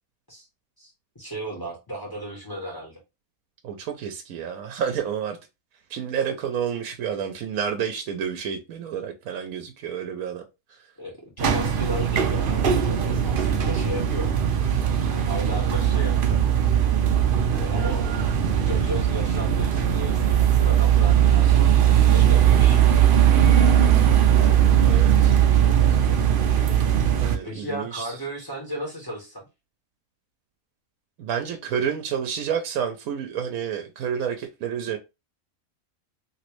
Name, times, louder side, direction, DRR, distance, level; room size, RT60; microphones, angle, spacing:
voice 1, 0.8-3.0 11.0-14.3 15.3-16.4 17.4-18.0 18.6-21.8 22.1-22.8 25.7-26.2 27.4-29.5, equal, 15° left, 1.6 m, -35 dB
voice 2, 3.6-5.4 5.9-10.4 24.8-25.4 27.1-28.1 31.2-35.0, right 8 dB, 85° right, 1.0 m, -29 dB
sound 1, 11.4-27.4, right 9 dB, 65° right, 0.5 m, -19 dB
3.1 x 3.0 x 3.0 m
omnidirectional pair, 1.5 m